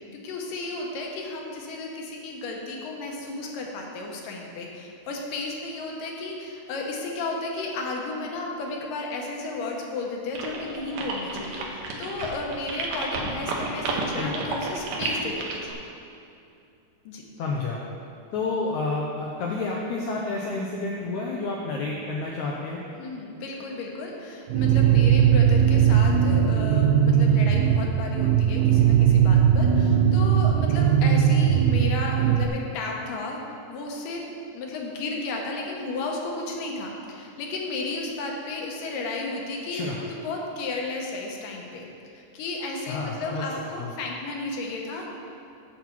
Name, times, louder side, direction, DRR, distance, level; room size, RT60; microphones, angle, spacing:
voice 1, 0.1-15.7 17.1-17.2 23.0-33.4 33.7-34.2 34.5-41.9 42.1-45.1, left 3 dB, 70° left, 0 dB, 2.4 m, -33 dB
sound 1, 10.4-15.7, right 3 dB, 70° right, 2.6 m, -31 dB
voice 2, 14.1-14.6 17.4-17.8 18.3-22.8 39.7-40.1 42.9-43.4 43.8-43.9, left 3 dB, 90° left, -2 dB, 1.7 m, -30 dB
sound 2, 24.5-32.5, right 8 dB, 90° right, 1.8 m, -19 dB
10.0 x 7.2 x 4.5 m, 2.6 s
omnidirectional pair, 4.3 m